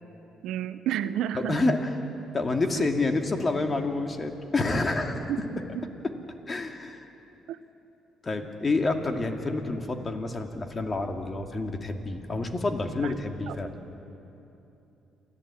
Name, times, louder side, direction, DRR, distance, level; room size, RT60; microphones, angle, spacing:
voice 1, 0.4-1.7 2.7-2.9 5.3-5.4 5.8-5.9 7.5-7.6 13.0-13.1 13.5-13.6, right 11 dB, 75° right, 12 dB, 0.8 m, -30 dB
voice 2, 1.3-1.9 2.3-5.5 6.5-7.0 8.2-13.7, left 3 dB, 30° left, 4 dB, 2.2 m, -28 dB
27.5 x 14.0 x 8.7 m, 3.0 s
supercardioid pair, 75°, 0 cm